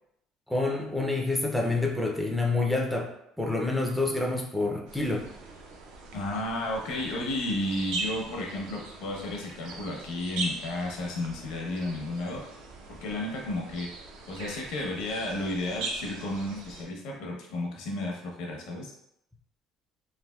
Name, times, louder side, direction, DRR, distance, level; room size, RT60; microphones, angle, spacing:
voice 1, 0.5-5.3, left 2 dB, ahead, 0 dB, 0.3 m, -28 dB
sound 1, 4.9-16.8, right 3 dB, 80° right, 0.5 m, -40 dB
voice 2, 6.1-12.5 12.9-13.9 14.3-18.9, left 1 dB, 80° left, 0 dB, 0.7 m, -33 dB
3.3 x 2.4 x 2.2 m, 0.77 s
cardioid pair, 155°, 0 cm